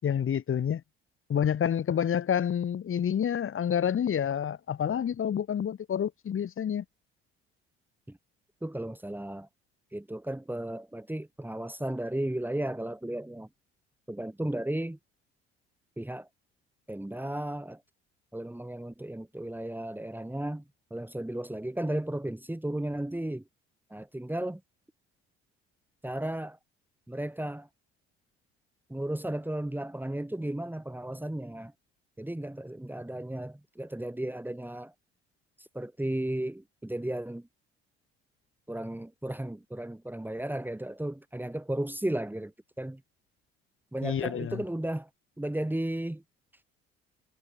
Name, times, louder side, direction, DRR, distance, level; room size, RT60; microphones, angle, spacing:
voice 1, 0.0-0.8 1.3-6.8 44.0-44.6, left 8 dB, 40° left, 7.5 m, -28 dB
voice 2, 8.6-9.5 9.9-13.5 14.1-15.0 16.0-16.3 16.9-17.8 18.3-20.6 20.9-23.4 23.9-24.6 26.0-26.6 27.1-27.7 28.9-31.7 32.2-34.9 35.6-37.5 38.7-42.5 42.8-43.0 43.9-45.1 45.4-46.2, right 1 dB, 5° right, 4.5 m, -34 dB
figure-of-eight pair, 50°, 31 cm